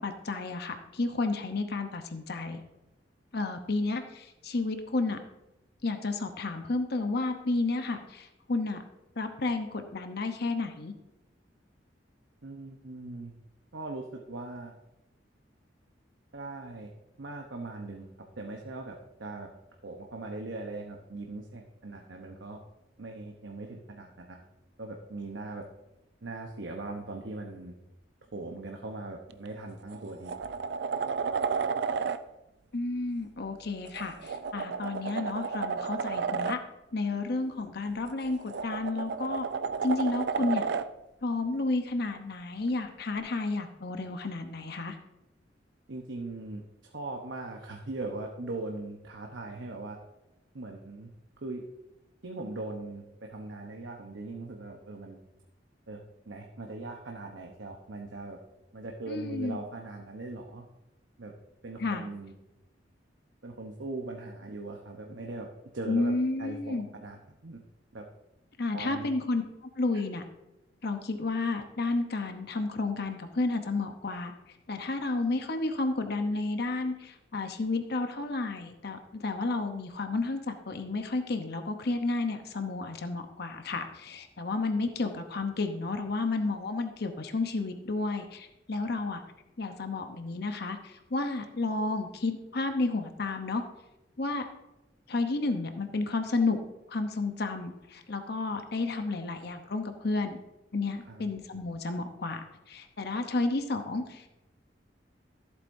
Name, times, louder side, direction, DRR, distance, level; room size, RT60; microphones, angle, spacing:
voice 1, 0.0-2.6 3.3-5.2 5.8-8.8 9.2-10.9 32.7-36.6 36.9-39.4 39.8-40.7 41.2-45.0 59.1-59.6 61.8-62.0 65.9-66.9 68.6-69.4 69.8-70.2 70.8-74.3 74.7-89.2 89.6-93.6 94.2-94.4 95.1-96.6 96.9-100.4 100.7-104.3, left 3 dB, 60° left, 6 dB, 0.9 m, -31 dB
voice 2, 12.4-13.3 13.7-14.7 16.3-16.9 17.2-18.1 18.4-19.5 19.8-22.6 23.0-24.4 24.8-25.6 26.2-27.7 28.3-30.3 45.9-50.0 50.5-51.1 51.4-51.6 52.2-55.2 55.9-58.4 58.7-60.7 61.2-61.3 61.6-62.3 63.4-65.5 65.7-66.1 66.4-67.6 67.9-68.0 68.7-69.1 69.9-70.0 101.1-101.2, right 2 dB, 80° right, 1 dB, 1.0 m, -40 dB
sound 1, 29.3-29.5 29.9-32.2 33.8-36.6 38.1-40.9 43.2-43.3, right 5 dB, 65° right, 0.4 m, -32 dB
14.0 x 8.2 x 2.7 m, 0.97 s
head